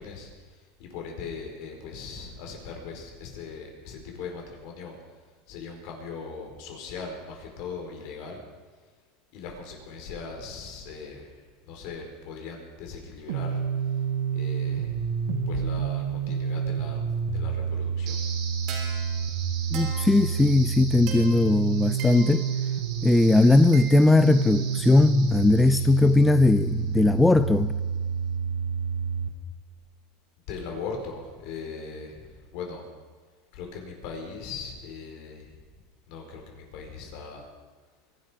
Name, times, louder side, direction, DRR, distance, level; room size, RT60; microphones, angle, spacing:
voice 1, 0.0-5.0 5.5-8.4 9.3-13.6 14.3-15.1 15.5-17.0 17.3-18.2 25.7-25.8 30.5-32.9 33.5-35.5 36.1-37.4, left 5 dB, 60° left, 2 dB, 4.9 m, -39 dB
sound 1, 13.3-29.3, right 6 dB, 80° right, 1.7 m, -29 dB
sound 2, 18.1-27.1, right 5 dB, 55° right, 4.1 m, -41 dB
voice 2, 19.7-22.5 23.0-27.7, left 2 dB, 10° left, 12 dB, 0.4 m, -19 dB
24.0 x 11.5 x 5.2 m, 1.5 s
supercardioid pair, 130°, 0 cm